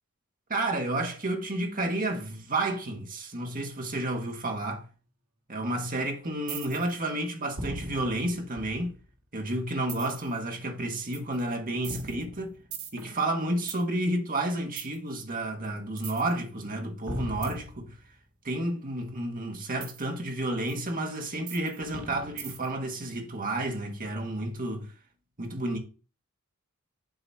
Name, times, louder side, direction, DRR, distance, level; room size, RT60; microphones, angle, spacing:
voice 1, 0.5-4.9 5.5-8.9 9.3-12.5 12.9-17.9 18.4-24.9 25.4-25.8, right 1 dB, 40° right, 1.6 m, -31 dB
sound 1, 6.5-7.0 7.6-9.1 9.9-10.3 11.1-11.4 11.8-13.8 14.8-15.0 16.0-16.3 17.1-18.2 19.8-20.0 20.7-20.8 21.5-22.8, right 3 dB, 70° right, 1.9 m, -39 dB
7.9 x 4.0 x 5.6 m
head